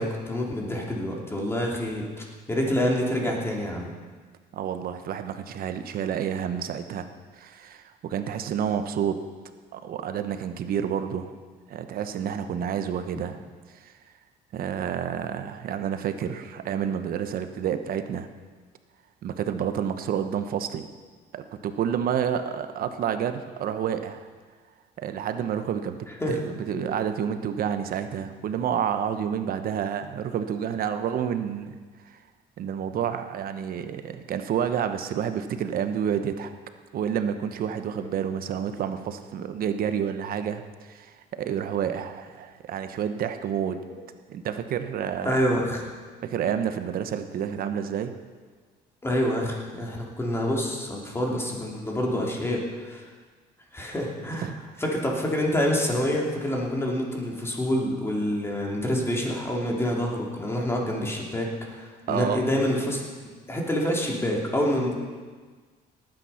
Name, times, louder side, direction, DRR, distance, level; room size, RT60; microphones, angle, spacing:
voice 1, 0.0-3.9 26.2-26.4 26.7-26.9 38.0-38.1 45.2-45.8 49.0-53.0 53.7-54.5 54.8-63.0 63.5-64.9, equal, 15° left, -1 dB, 3.1 m, -27 dB
voice 2, 4.5-7.1 7.3-9.2 9.7-11.3 11.7-13.4 13.8-13.9 14.5-18.3 19.2-20.9 21.3-24.3 25.0-31.8 32.1-32.2 32.6-36.5 36.9-43.8 44.3-45.4 46.2-48.1 54.3-54.6 62.1-62.4, right 8 dB, 60° right, 9 dB, 1.0 m, -29 dB
18.0 x 9.2 x 5.8 m, 1.5 s
cardioid pair, 110°, 17 cm